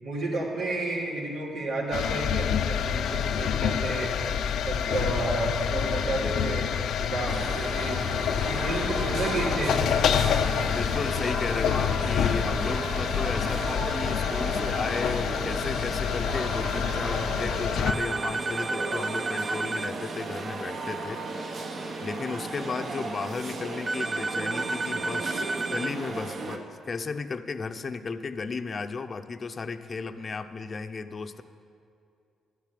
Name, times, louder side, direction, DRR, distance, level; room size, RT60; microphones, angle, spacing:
voice 1, 0.0-4.1 4.6-6.7 7.0-8.0 8.4-9.8, right 2 dB, 85° right, -5 dB, 3.1 m, -31 dB
sound 1, 1.9-17.9, left 8 dB, 75° left, 0.5 m, -27 dB
sound 2, 7.3-26.6, right 3 dB, 55° right, 1.3 m, -35 dB
voice 2, 10.7-21.5 22.0-31.4, left 4 dB, 40° left, 10 dB, 0.7 m, -34 dB
sound 3, 17.9-19.9 23.9-25.9, right 3 dB, 25° right, 0.4 m, -31 dB
12.5 x 7.2 x 8.4 m, 2.6 s
cardioid pair, 90°, 0 cm